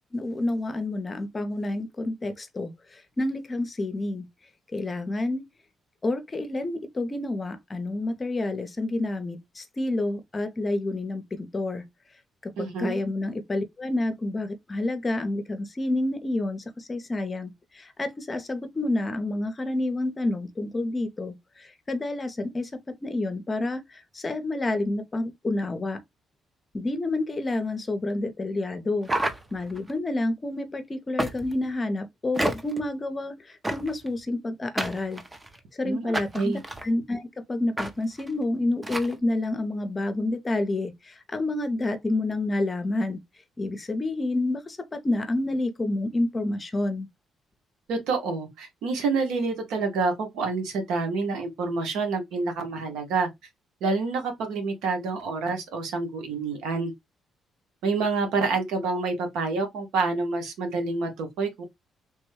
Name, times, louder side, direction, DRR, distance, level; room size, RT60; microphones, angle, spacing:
voice 1, 0.1-2.7 3.2-4.3 4.7-5.4 6.0-11.8 12.4-21.4 21.9-23.8 24.1-26.0 26.7-29.1 29.5-33.3 33.7-35.2 35.8-36.5 36.8-43.2 43.6-47.1, left 2 dB, 30° left, 0.6 m, -29 dB
voice 2, 12.6-13.0 35.8-36.6 47.9-53.3 53.8-56.9 57.8-61.6, right 4 dB, 85° right, 0.9 m, -28 dB
sound 1, 29.0-29.9 31.2-31.7 32.4-32.8 33.6-34.1 34.8-35.6 36.1-36.9 37.8-37.9 38.2-38.3 38.8-39.1, right 1 dB, 15° right, 0.6 m, -30 dB
3.4 x 2.1 x 3.1 m
cardioid pair, 90°, 0 cm